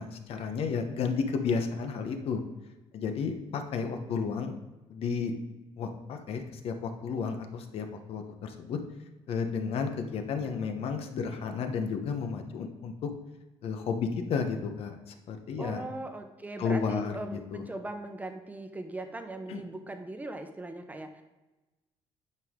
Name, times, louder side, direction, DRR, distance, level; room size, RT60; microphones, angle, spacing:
voice 1, 0.0-2.4 2.9-4.5 4.9-5.3 5.8-8.8 9.3-13.1 13.6-15.8 16.6-17.1 17.5-17.6 19.5-19.6, left 5 dB, 65° left, 6 dB, 1.0 m, -32 dB
voice 2, 15.6-21.2, right 2 dB, 15° right, 6 dB, 1.0 m, -39 dB
9.4 x 5.4 x 3.7 m, 1.1 s
cardioid pair, 100°, 11 cm